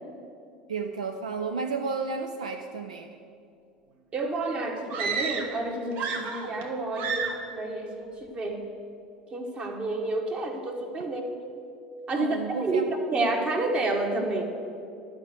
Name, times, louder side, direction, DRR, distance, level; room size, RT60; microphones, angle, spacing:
voice 1, 0.7-3.1 12.1-12.8, right 4 dB, 75° right, 5 dB, 0.5 m, -32 dB
voice 2, 4.1-8.6 9.3-11.4 12.1-14.4, right 2 dB, 30° right, 3 dB, 1.5 m, -29 dB
sound 1, 4.9-5.6 5.9-6.7 7.0-7.5, right 5 dB, 50° right, 1.0 m, -31 dB
11.5 x 5.2 x 8.1 m, 2.5 s
figure-of-eight pair, 70°, 4 cm